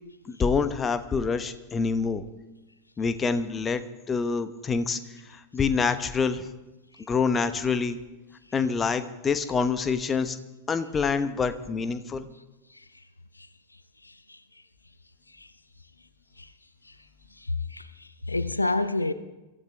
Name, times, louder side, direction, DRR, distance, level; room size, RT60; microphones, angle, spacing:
voice 1, 0.2-2.2 3.0-5.0 5.3-6.5 7.1-8.0 8.5-10.4 10.7-12.3, left 5 dB, 20° left, 1.0 m, -26 dB
voice 2, 14.0-14.4 15.3-15.5 16.4-16.5 16.8-17.0 17.3-19.1, left 2 dB, 80° left, 0.6 m, -30 dB
24.0 x 14.0 x 3.4 m
figure-of-eight pair, 90°, 0 cm